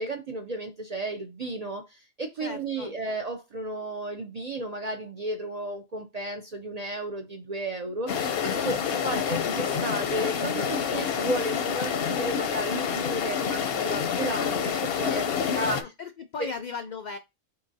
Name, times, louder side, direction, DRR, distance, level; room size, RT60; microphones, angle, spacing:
voice 1, 0.0-15.9 16.4-16.5, right 1 dB, 50° right, 0.4 m, -33 dB
voice 2, 2.4-3.0 8.8-9.4 15.0-17.2, left 4 dB, 85° left, 0.4 m, -38 dB
sound 1, 8.1-15.8, left 7 dB, 60° left, 0.7 m, -28 dB
4.7 x 3.8 x 2.6 m
omnidirectional pair, 1.3 m